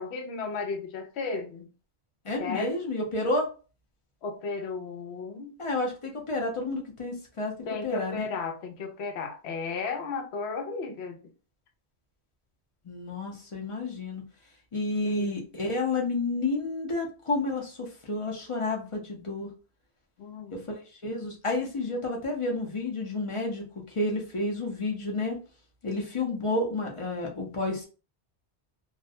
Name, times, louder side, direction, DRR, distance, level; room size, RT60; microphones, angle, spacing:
voice 1, 0.0-1.7 2.4-2.7 4.2-5.6 7.7-11.2 15.0-15.3 20.2-20.6, left 4 dB, 80° left, 0.8 m, -34 dB
voice 2, 2.2-3.5 5.6-7.5 7.8-8.2 12.8-14.2 14.7-19.5 20.5-25.4 25.8-27.8, left 2 dB, 40° left, 0.5 m, -30 dB
2.4 x 2.0 x 2.6 m
omnidirectional pair, 1.1 m